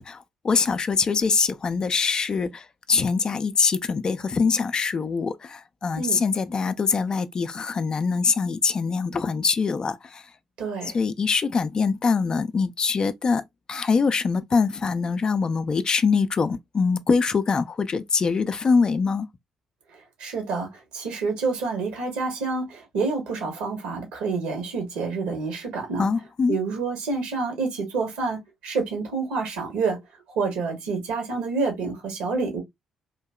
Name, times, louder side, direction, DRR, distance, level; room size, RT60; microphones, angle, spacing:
voice 1, 0.0-10.3 10.9-19.3 26.0-26.6, left 5 dB, 35° left, 0.4 m, -23 dB
voice 2, 10.6-11.0 20.2-26.1 26.5-30.0 30.3-32.6, right 4 dB, 65° right, 1.2 m, -28 dB
3.7 x 2.7 x 2.2 m
figure-of-eight pair, 45°, 2 cm